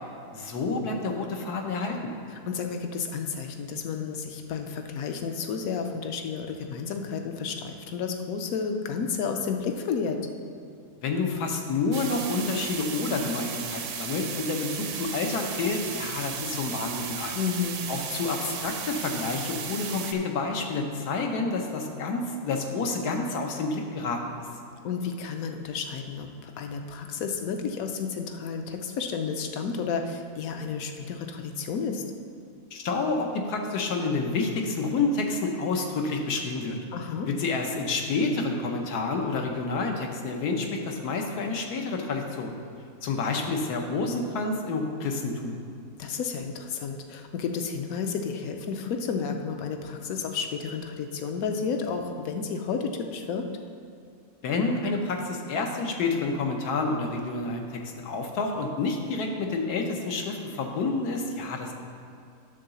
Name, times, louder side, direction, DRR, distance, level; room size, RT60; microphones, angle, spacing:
voice 1, 0.3-2.0 11.0-17.4 17.9-24.3 32.7-36.8 37.3-42.5 43.0-45.6 54.4-57.6 58.0-61.7, left 3 dB, 85° left, 3 dB, 1.4 m, -29 dB
voice 2, 2.5-10.2 17.3-17.8 24.8-32.0 36.9-37.3 46.0-53.5, left 6 dB, 70° left, 5 dB, 1.1 m, -31 dB
sound 1, 11.9-20.1, right 7 dB, 60° right, 0.9 m, -35 dB
10.0 x 3.8 x 6.8 m, 2.4 s
omnidirectional pair, 1.6 m